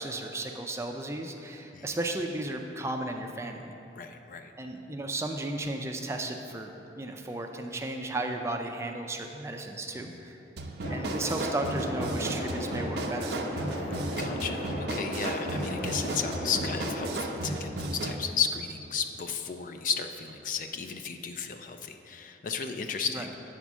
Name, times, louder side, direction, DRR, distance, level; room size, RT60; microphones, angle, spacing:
voice 1, 0.0-3.8 4.6-10.4 10.9-13.7 23.1-23.3, right 2 dB, 15° right, 4 dB, 0.4 m, -34 dB
voice 2, 4.0-4.5 9.9-10.2 14.2-23.3, left 6 dB, 50° left, 7 dB, 0.4 m, -34 dB
sound 1, 10.6-18.2, right 2 dB, 65° right, 0.5 m, -35 dB
sound 2, 10.8-17.2, equal, 75° left, 1.5 m, -35 dB
8.3 x 4.4 x 6.1 m, 2.9 s
head